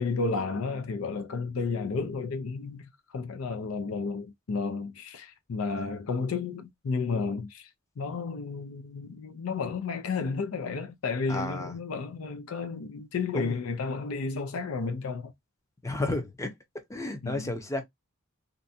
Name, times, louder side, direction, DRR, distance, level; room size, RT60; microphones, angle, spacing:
voice 1, 0.0-7.7 8.0-15.3 17.2-17.5, left 4 dB, 85° left, 0.5 m, -32 dB
voice 2, 11.3-11.7 13.3-13.6 15.8-16.6 16.9-17.8, left 2 dB, 15° left, 0.6 m, -32 dB
2.6 x 2.2 x 2.6 m
head